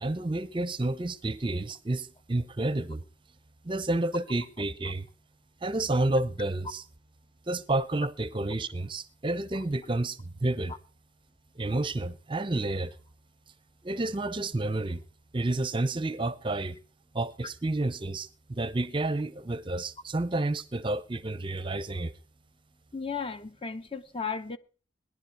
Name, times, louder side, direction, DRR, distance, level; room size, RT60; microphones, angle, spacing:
voice 1, 0.0-3.0 3.6-5.1 5.6-6.8 7.5-10.7 11.6-13.0 13.8-15.0 15.3-16.8 17.1-22.1, right 2 dB, 30° right, 0.7 m, -30 dB
voice 2, 22.9-24.6, left 5 dB, 30° left, 0.9 m, -35 dB
19.0 x 11.0 x 4.7 m
head